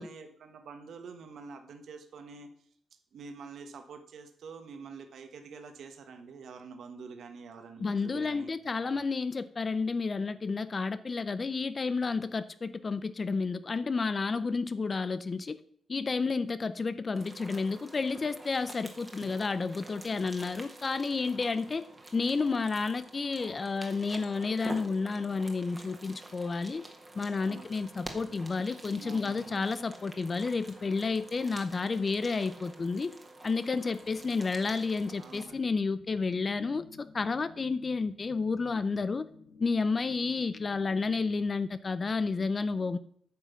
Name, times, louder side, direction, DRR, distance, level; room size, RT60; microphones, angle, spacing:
voice 1, 0.0-2.5 3.1-8.5 8.8-9.0 27.4-27.7 28.9-29.6 35.2-35.6, right 5 dB, 65° right, 6 dB, 1.4 m, -47 dB
voice 2, 7.8-15.6 15.9-21.8 22.1-26.8 27.2-33.1 33.4-39.2 39.6-43.0, left 4 dB, 30° left, 14 dB, 0.5 m, -31 dB
sound 1, 17.1-35.4, right 2 dB, 15° right, 1.6 m, -48 dB
sound 2, 34.0-41.4, left 4 dB, 70° left, 3.0 m, -55 dB
9.5 x 5.9 x 7.0 m, 0.63 s
wide cardioid pair, 140°, 0 cm